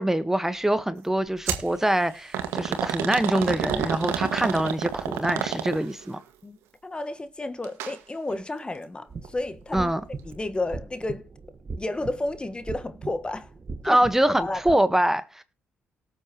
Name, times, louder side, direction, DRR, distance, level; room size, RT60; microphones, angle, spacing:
voice 1, 0.0-6.2 9.7-10.0 13.8-15.4, right 1 dB, 10° right, 1.3 m, -24 dB
sound 1, 1.5-1.7 2.3-6.0 7.6-7.9 8.3-8.4 9.2-9.3, right 9 dB, 80° right, 1.8 m, -29 dB
voice 2, 6.8-9.9 10.2-11.3 11.8-13.5 13.8-14.0 14.4-14.8, left 2 dB, 20° left, 1.4 m, -31 dB
sound 2, 9.1-14.7, right 4 dB, 40° right, 1.4 m, -40 dB
18.5 x 7.9 x 3.0 m
supercardioid pair, 55°, 4 cm